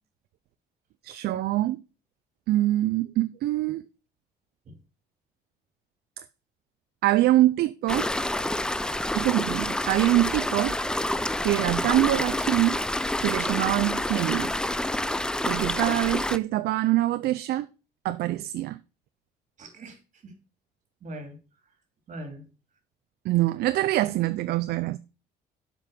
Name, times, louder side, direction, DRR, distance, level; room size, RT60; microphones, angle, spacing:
voice 1, 1.0-1.8 2.5-3.8 6.2-6.3 7.0-8.1 9.1-10.8 11.4-12.8 13.2-14.5 15.5-17.7 18.0-18.8 23.2-25.0, right 16 dB, 70° right, 0.5 m, -24 dB
sound 1, 7.9-16.4, left 1 dB, 5° left, 0.4 m, -28 dB
voice 2, 19.6-20.0 20.2-20.3 21.0-21.4 22.1-22.5, right 1 dB, 45° right, 2.9 m, -40 dB
7.5 x 5.2 x 6.7 m
cardioid pair, 110°, 17 cm